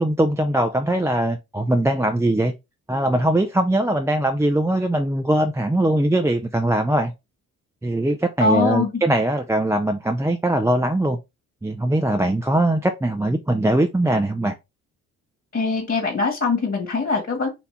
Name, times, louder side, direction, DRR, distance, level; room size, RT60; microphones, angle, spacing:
voice 1, 0.0-2.5 2.9-7.1 7.8-11.2 11.6-14.5, right 1 dB, 10° right, 0.5 m, -21 dB
voice 2, 8.4-8.9 15.5-17.5, left 3 dB, 35° left, 2.0 m, -22 dB
4.4 x 2.7 x 4.3 m
hypercardioid pair, 50°, 37 cm